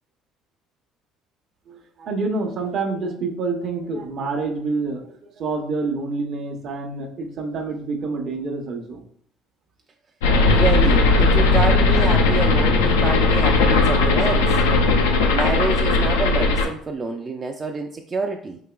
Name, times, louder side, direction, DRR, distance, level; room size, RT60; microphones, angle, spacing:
voice 1, 1.7-9.0, right 3 dB, 60° right, 3 dB, 0.7 m, -27 dB
sound 1, 10.2-16.7, left 3 dB, 90° left, 0.4 m, -17 dB
voice 2, 10.4-14.6 15.3-18.6, right 3 dB, 35° right, 3 dB, 0.4 m, -27 dB
4.8 x 2.9 x 2.3 m, 0.63 s
hypercardioid pair, 70°, 0 cm